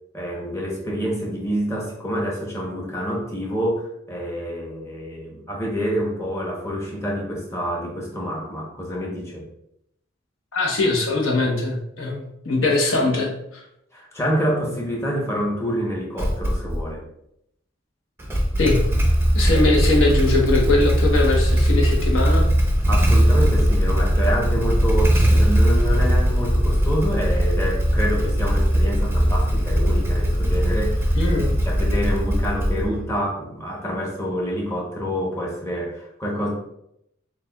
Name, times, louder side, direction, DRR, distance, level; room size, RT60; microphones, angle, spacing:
voice 1, 0.1-9.4 13.9-17.0 22.9-31.4 31.6-36.5, equal, 15° left, -2 dB, 0.8 m, -27 dB
voice 2, 10.5-13.6 18.6-18.8 19.3-22.4 25.3-25.4 31.1-31.6, left 2 dB, 85° left, 0 dB, 1.0 m, -21 dB
Motorcycle / Engine starting, 16.2-16.8 18.2-33.1, equal, 10° right, 0.5 m, -19 dB
6.5 x 2.4 x 2.3 m, 0.78 s
head